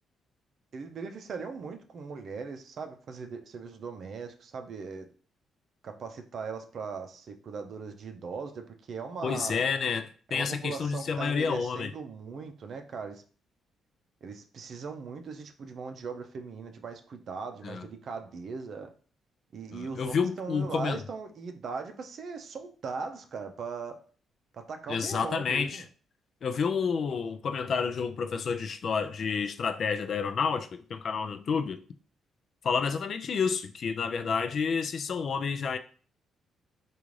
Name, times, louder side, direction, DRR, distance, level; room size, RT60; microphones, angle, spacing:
voice 1, 0.7-5.1 5.8-9.6 10.3-13.2 14.2-18.9 19.5-24.0 24.5-25.8, right 5 dB, 55° right, 0.5 m, -39 dB
voice 2, 9.2-11.9 17.6-17.8 19.7-21.0 24.9-25.8 26.4-31.8 32.6-35.8, left 5 dB, 55° left, 0.3 m, -29 dB
3.7 x 2.4 x 3.1 m
cardioid pair, 90°, 0 cm